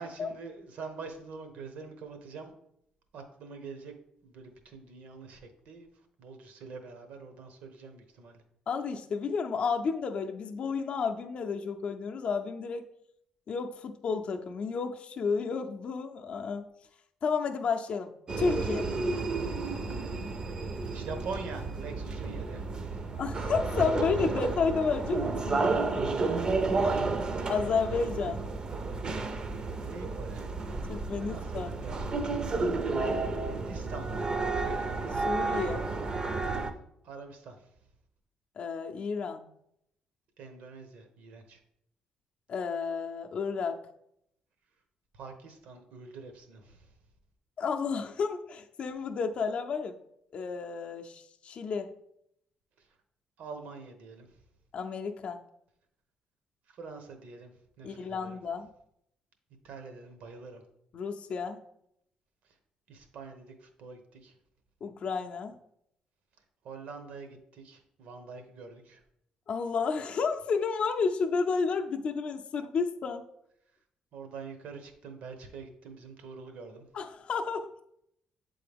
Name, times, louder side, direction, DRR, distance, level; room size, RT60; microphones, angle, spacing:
voice 1, 0.0-2.5 3.1-3.9 4.2-5.9 6.2-8.4 20.9-23.1 29.8-30.5 31.2-32.2 33.4-34.1 34.5-34.9 37.0-37.7 40.4-41.6 45.1-46.9 53.4-54.3 56.7-57.5 57.8-58.4 59.6-60.6 62.9-64.3 66.6-69.0 74.1-76.9, right 4 dB, 75° right, 6 dB, 0.9 m, -45 dB
voice 2, 8.7-12.8 13.5-16.6 17.2-18.1 18.4-18.9 23.1-26.0 27.5-28.4 30.9-31.7 33.1-33.3 35.3-35.9 38.6-39.4 42.5-43.8 47.6-49.9 50.3-51.9 54.7-55.4 57.8-58.7 60.9-61.6 64.8-65.5 69.5-73.2 76.9-77.8, left 5 dB, 50° left, 4 dB, 0.5 m, -31 dB
sound 1, 18.3-36.7, right 3 dB, 35° right, 0.5 m, -31 dB
7.6 x 3.8 x 3.4 m, 0.75 s
cardioid pair, 100°, 2 cm